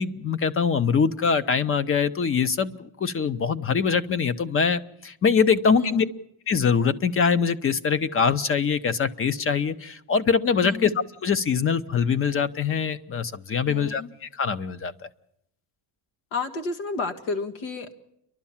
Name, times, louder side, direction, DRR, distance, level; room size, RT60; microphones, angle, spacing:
voice 1, 0.0-6.0 6.5-10.9 11.2-14.9, left 6 dB, 30° left, 15 dB, 0.7 m, -23 dB
voice 2, 13.7-14.1 16.3-18.0, left 4 dB, 75° left, 6 dB, 1.9 m, -31 dB
30.0 x 12.0 x 7.3 m, 0.77 s
cardioid pair, 155°, 47 cm